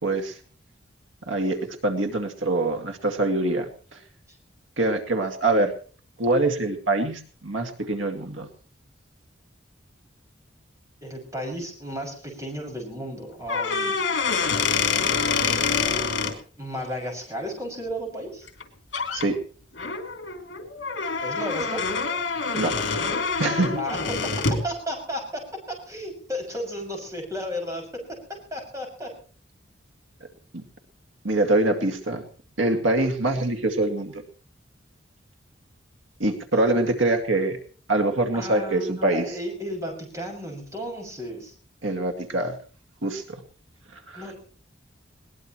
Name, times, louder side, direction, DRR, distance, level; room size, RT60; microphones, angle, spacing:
voice 1, 0.0-0.4 1.3-4.0 4.8-5.7 6.2-8.5 19.1-19.4 22.5-22.7 23.4-23.8 30.5-30.6 31.2-32.2 32.6-34.2 36.2-37.6 37.9-39.4 41.8-42.6 43.0-43.4 43.9-44.3, right 2 dB, 90° right, 5 dB, 2.2 m, -24 dB
voice 2, 11.0-14.0 16.6-18.5 21.2-21.8 23.8-28.2 28.5-29.1 38.3-41.5 44.1-44.3, equal, 15° right, 1 dB, 6.5 m, -33 dB
sound 1, 13.4-16.3 18.5-18.6 18.9-19.3 19.8-24.7, left 5 dB, 65° left, 3.5 m, -26 dB
21.5 x 19.5 x 3.1 m, 0.42 s
head